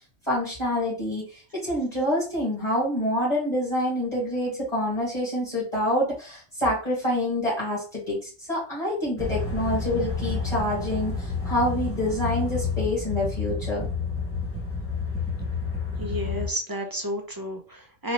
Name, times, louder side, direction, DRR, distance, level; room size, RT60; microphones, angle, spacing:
voice 1, 0.2-13.9, left 1 dB, 35° left, -6 dB, 1.9 m, -27 dB
sound 1, 9.2-16.5, left 4 dB, 15° left, 0.8 m, -30 dB
voice 2, 16.0-18.1, equal, 30° right, 3 dB, 0.4 m, -31 dB
4.1 x 2.7 x 3.0 m, 0.37 s
omnidirectional pair, 1.2 m